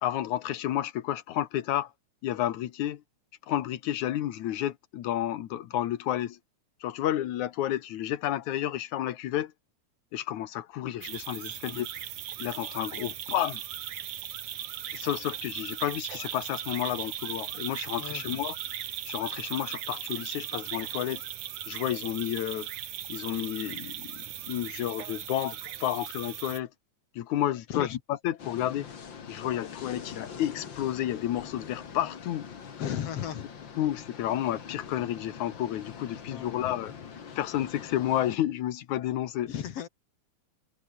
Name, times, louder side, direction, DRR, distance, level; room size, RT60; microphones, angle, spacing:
voice 1, 0.0-1.9 2.2-3.0 3.5-6.4 6.8-9.5 10.1-11.9 12.4-13.6 14.9-18.6 19.1-21.2 21.7-22.7 23.1-26.7 27.2-28.9 29.3-32.5 33.8-36.9 37.4-39.5, left 12 dB, 75° left, 2.6 m, -31 dB
sound 1, 11.0-26.6, right 11 dB, 85° right, 3.2 m, -38 dB
voice 2, 18.0-18.4 27.7-28.0 32.8-33.5 36.3-36.8 39.4-39.9, left 9 dB, 60° left, 2.2 m, -35 dB
sound 2, 28.4-38.4, left 6 dB, 40° left, 2.4 m, -44 dB
omnidirectional pair, 3.5 m